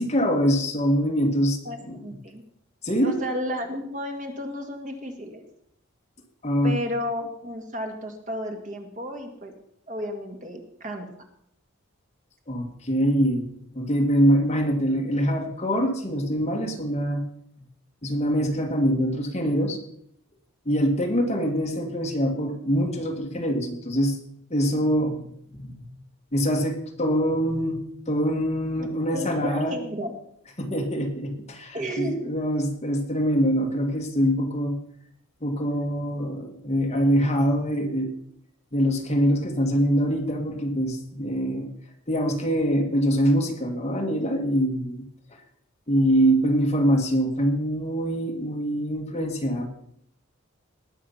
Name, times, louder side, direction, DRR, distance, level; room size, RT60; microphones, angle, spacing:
voice 1, 0.0-2.0 2.8-3.2 6.4-6.8 12.5-13.5 13.7-17.2 18.0-19.8 20.7-24.2 24.5-25.8 26.3-29.8 30.6-34.8 35.4-38.1 38.7-41.7 42.1-45.0 45.3-45.4 45.9-49.7, equal, 30° left, 2 dB, 2.1 m, -24 dB
voice 2, 1.7-2.4 3.0-5.5 6.6-9.5 9.9-11.1 28.8-28.9 29.1-30.2 31.7-32.1, equal, 40° right, 4 dB, 1.9 m, -32 dB
19.0 x 7.4 x 5.8 m, 0.70 s
head